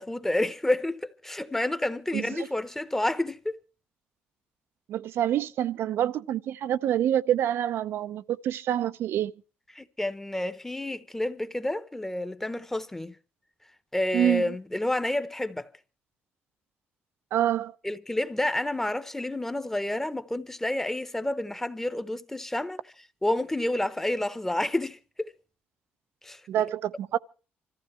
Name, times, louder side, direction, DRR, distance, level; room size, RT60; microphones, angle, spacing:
voice 1, 0.0-3.6 9.7-13.1 13.9-15.7 17.8-22.8 23.2-25.3 26.2-26.4, left 1 dB, 10° left, 1.0 m, -29 dB
voice 2, 2.1-2.5 4.9-9.3 14.1-14.5 17.3-17.7 26.5-27.2, right 11 dB, 70° right, 0.7 m, -27 dB
25.5 x 14.5 x 3.2 m
cardioid pair, 110°, 4 cm